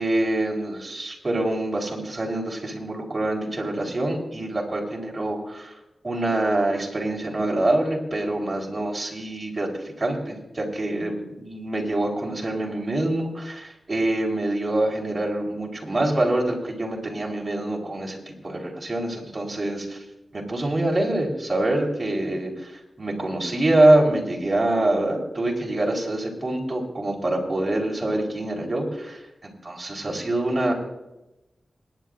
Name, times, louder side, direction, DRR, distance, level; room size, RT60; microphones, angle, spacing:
voice 1, 0.0-5.7 6.0-9.7 10.0-20.0 20.3-30.7, right 1 dB, 35° right, -1 dB, 4.2 m, -25 dB
27.5 x 10.5 x 2.6 m, 0.97 s
cardioid pair, 65°, 0 cm